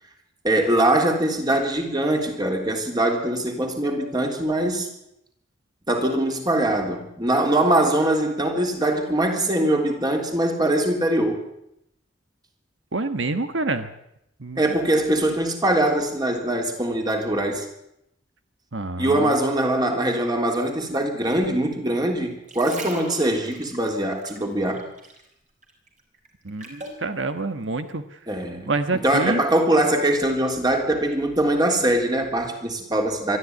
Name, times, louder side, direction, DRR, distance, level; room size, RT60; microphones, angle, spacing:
voice 1, 0.4-4.9 5.9-11.4 14.6-17.7 19.0-24.9 28.3-28.7 29.0-33.4, right 1 dB, 25° right, 3.5 m, -22 dB
voice 2, 12.9-13.9 14.4-14.7 18.7-19.3 26.4-28.0 28.7-29.4, right 3 dB, 80° right, 1.3 m, -27 dB
sound 1, 22.3-25.3 25.6-27.0 27.6-27.8, right 2 dB, 40° right, 5.2 m, -39 dB
22.5 x 13.0 x 9.5 m
head